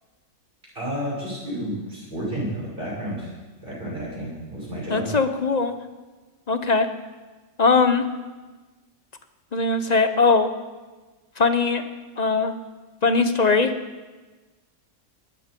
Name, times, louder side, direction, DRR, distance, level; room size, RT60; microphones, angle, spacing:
voice 1, 0.7-3.3 3.6-5.1, equal, 30° right, -5 dB, 7.1 m, -31 dB
voice 2, 4.9-5.7 6.5-6.9 7.6-8.0 9.5-10.5 11.4-11.8 12.2-12.5 13.0-13.7, left 4 dB, 35° left, 9 dB, 0.7 m, -20 dB
20.5 x 13.5 x 5.3 m, 1.3 s
omnidirectional pair, 1.7 m